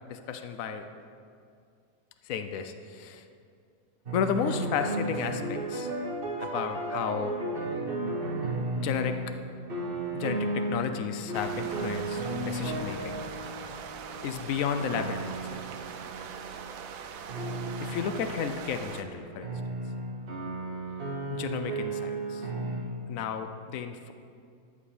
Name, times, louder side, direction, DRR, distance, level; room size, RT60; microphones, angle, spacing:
voice 1, 0.1-0.9 2.2-3.2 4.1-5.9 6.4-7.4 8.8-9.2 10.1-13.2 14.2-15.6 17.8-19.5 21.3-22.5 23.1-24.1, left 7 dB, 75° left, 8 dB, 0.7 m, -33 dB
sound 1, 4.1-9.4 9.7-10.9 11.3-16.8 17.3-22.8, right 2 dB, 35° right, 1.2 m, -34 dB
sound 2, 9.1-19.9, right 3 dB, 55° right, 1.2 m, -50 dB
sound 3, 11.3-19.0, right 7 dB, 85° right, 1.5 m, -42 dB
12.5 x 5.2 x 7.0 m, 2.3 s
omnidirectional pair, 2.1 m